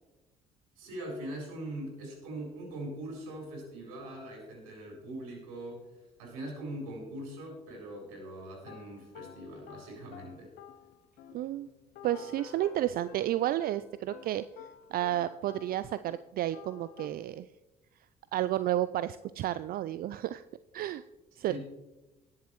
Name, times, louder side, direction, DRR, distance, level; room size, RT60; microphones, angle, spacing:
voice 1, 0.8-5.9 6.2-10.5 21.5-21.6, right 1 dB, 80° right, -1 dB, 4.2 m, -41 dB
sound 1, 8.6-16.3 16.5-17.1, left 9 dB, 65° left, 0.9 m, -51 dB
voice 2, 11.3-11.7 12.0-14.5 14.9-17.5 18.3-20.4 20.7-21.0 21.4-21.6, right 13 dB, 50° right, 14 dB, 0.4 m, -31 dB
20.0 x 7.3 x 3.1 m, 1.1 s
hypercardioid pair, 50°, 19 cm